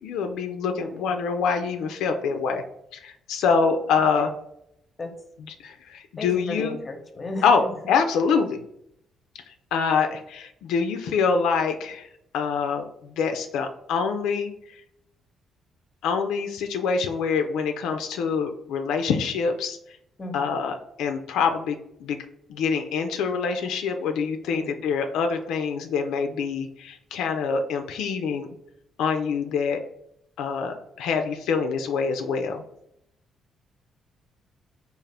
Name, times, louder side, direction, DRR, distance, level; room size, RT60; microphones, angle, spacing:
voice 1, 0.0-2.6 2.9-4.3 5.6-6.8 7.4-8.6 9.5-12.1 12.3-14.5 16.0-19.8 20.3-22.2 22.5-28.5 29.0-29.8 30.4-32.6, left 5 dB, 85° left, 6 dB, 0.3 m, -25 dB
voice 2, 6.2-7.7 20.2-20.5 24.5-24.7, left 2 dB, 25° left, 5 dB, 0.7 m, -35 dB
3.7 x 2.4 x 3.3 m, 0.75 s
cardioid pair, 90°, 0 cm